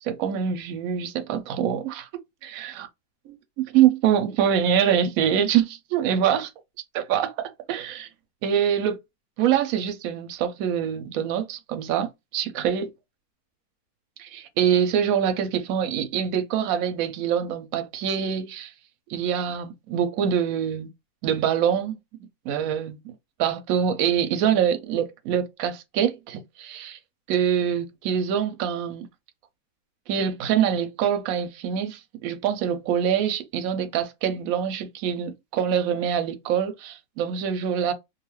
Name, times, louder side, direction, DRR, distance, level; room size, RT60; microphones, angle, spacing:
voice 1, 0.0-2.9 3.6-6.5 7.1-8.1 8.4-9.0 9.4-12.9 14.2-18.7 19.1-20.9 21.2-22.0 22.5-23.1 23.4-27.0 27.3-29.1 30.1-37.9, right 9 dB, 70° right, 0.9 m, -25 dB
2.6 x 2.4 x 3.0 m
omnidirectional pair, 1.7 m